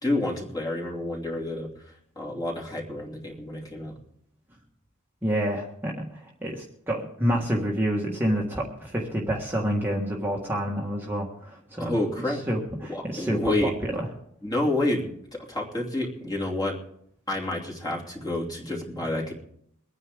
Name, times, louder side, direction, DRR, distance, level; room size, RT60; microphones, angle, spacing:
voice 1, 0.0-3.9 11.8-12.4 12.9-13.7 14.4-15.1 15.5-16.8 17.3-19.3, left 1 dB, 20° left, -2 dB, 2.8 m, -29 dB
voice 2, 5.2-11.9 12.5-14.1, equal, 10° right, -2 dB, 1.6 m, -28 dB
23.5 x 9.6 x 3.7 m, 0.70 s
head